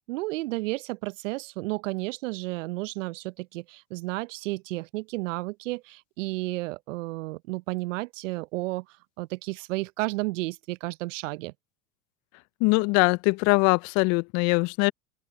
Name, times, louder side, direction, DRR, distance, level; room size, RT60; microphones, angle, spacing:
voice 1, 0.0-8.8 9.2-11.5, right 21 dB, 65° right, 0.9 m, -32 dB
voice 2, 12.6-14.9, left 29 dB, 40° left, 0.5 m, -22 dB
open air
hypercardioid pair, 90°, 41 cm